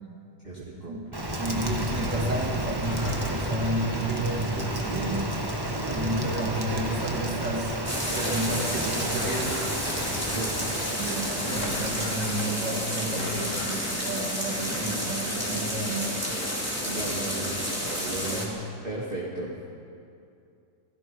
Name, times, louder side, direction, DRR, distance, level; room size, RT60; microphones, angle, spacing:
voice 1, 0.4-1.0 10.3-10.6 16.9-18.4 18.8-19.5, right 2 dB, 30° right, -6 dB, 2.8 m, -35 dB
Rain, 1.1-13.5, right 1 dB, 15° right, 1.4 m, -32 dB
voice 2, 1.4-5.4 5.9-7.8 8.1-9.6 11.0-16.2 18.3-18.6, right 1 dB, 70° right, 0 dB, 3.3 m, -31 dB
sound 1, 2.8-4.9 5.4-7.3 7.7-16.1 16.4-17.1, left 2 dB, 45° left, 2.3 m, -42 dB
sound 2, 7.8-18.4, equal, 10° left, 3.5 m, -31 dB
28.5 x 17.5 x 5.4 m, 2.5 s
omnidirectional pair, 1.9 m